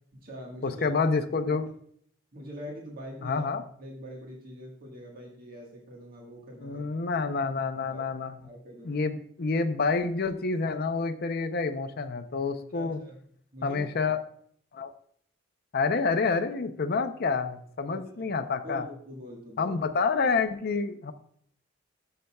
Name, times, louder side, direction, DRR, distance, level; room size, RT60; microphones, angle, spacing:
voice 1, 0.1-1.0 2.3-3.5 3.8-6.8 7.9-8.0 8.4-9.1 12.7-13.2 13.5-14.0 17.9-18.3 18.6-19.8, equal, 50° right, -1 dB, 1.5 m, -43 dB
voice 2, 0.6-1.7 3.2-3.6 6.6-8.3 8.9-13.0 13.6-14.2 14.7-14.9 15.7-18.8 19.6-21.1, left 4 dB, 55° left, 8 dB, 0.6 m, -28 dB
13.0 x 6.7 x 2.3 m, 0.63 s
head